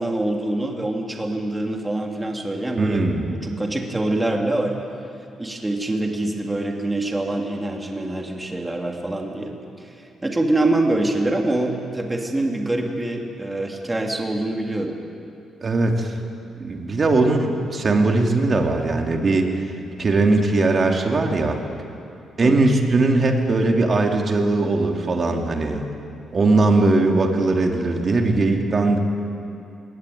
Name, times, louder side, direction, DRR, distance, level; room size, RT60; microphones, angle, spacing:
voice 1, 0.0-4.8 5.4-10.0 10.2-15.0 22.4-22.6, right 2 dB, 15° right, 1 dB, 2.6 m, -25 dB
voice 2, 2.8-3.3 15.6-16.1 16.6-19.5 20.0-21.6 22.4-25.8 26.3-29.0, right 2 dB, 40° right, 2 dB, 2.9 m, -19 dB
21.0 x 18.0 x 9.4 m, 2.7 s
cardioid pair, 90°, 0 cm